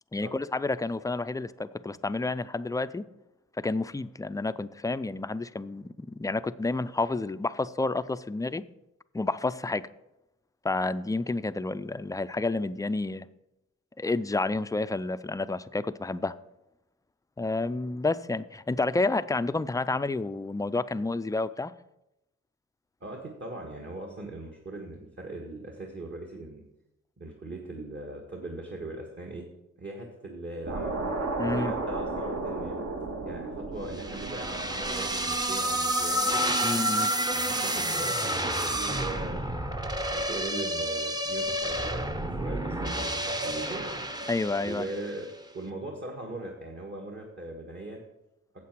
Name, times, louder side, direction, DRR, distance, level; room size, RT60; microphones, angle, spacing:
voice 1, 0.1-3.0 3.6-8.6 9.1-9.9 10.6-13.3 14.0-16.4 17.4-21.7 31.4-31.7 36.6-37.1 44.3-44.8, left 3 dB, 10° left, 0.3 m, -30 dB
voice 2, 23.0-26.6 27.2-29.4 29.8-31.0 31.4-32.8 33.2-36.6 37.3-39.4 40.1-43.9 44.6-45.3 45.5-48.0, right 2 dB, 40° right, 1.6 m, -40 dB
sound 1, 30.6-35.9, right 2 dB, 60° right, 1.7 m, -34 dB
sound 2, 33.9-45.2, right 1 dB, 15° right, 0.7 m, -30 dB
8.3 x 7.6 x 6.1 m
cardioid pair, 85°, 29 cm